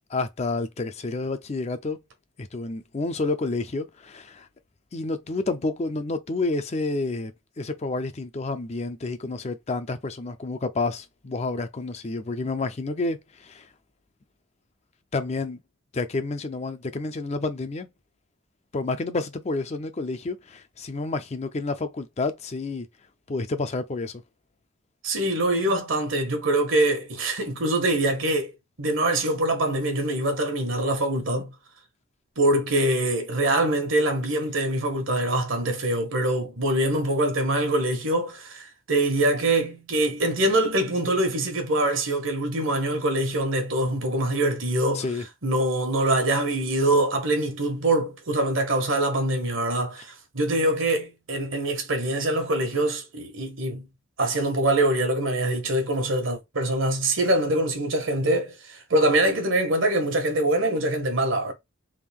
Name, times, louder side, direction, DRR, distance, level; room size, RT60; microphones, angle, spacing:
voice 1, 0.1-2.0 2.4-4.5 4.9-13.7 15.1-15.6 15.9-17.9 18.7-22.9 23.3-24.2 44.9-45.3, left 3 dB, 30° left, 0.4 m, -29 dB
voice 2, 25.0-31.5 32.4-45.0 45.4-53.9 54.2-61.5, right 1 dB, 75° right, 1.3 m, -24 dB
3.6 x 2.5 x 3.5 m
head